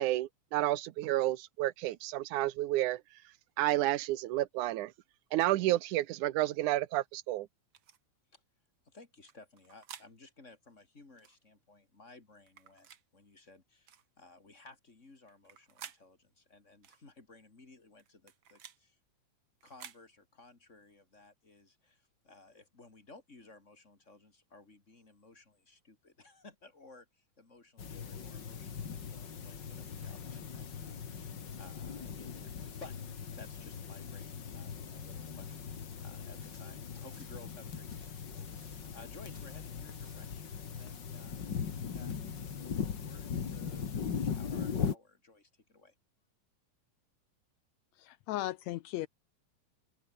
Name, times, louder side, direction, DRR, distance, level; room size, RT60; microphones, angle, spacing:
voice 1, 0.0-3.0 3.6-4.9 5.3-7.5, right 15 dB, 85° right, 2.3 m, -30 dB
sound 1, 7.7-8.0 9.3-10.1 11.2-11.4 12.5-13.0 13.9-14.1 15.3-16.0 16.8-17.0 18.0-18.8 19.6-20.0, right 8 dB, 50° right, 1.9 m, -52 dB
voice 2, 8.8-19.0 19.6-27.1 27.4-32.9 33.4-35.6 36.0-45.9, left 3 dB, 25° left, 3.0 m, -57 dB
sound 2, 27.8-44.9, left 6 dB, 40° left, 2.2 m, -40 dB
sound 3, 36.4-39.0 39.3-40.4 40.7-41.1, right 2 dB, 25° right, 6.8 m, -65 dB
voice 3, 48.0-49.1, left 15 dB, 75° left, 1.8 m, -36 dB
open air
omnidirectional pair, 3.4 m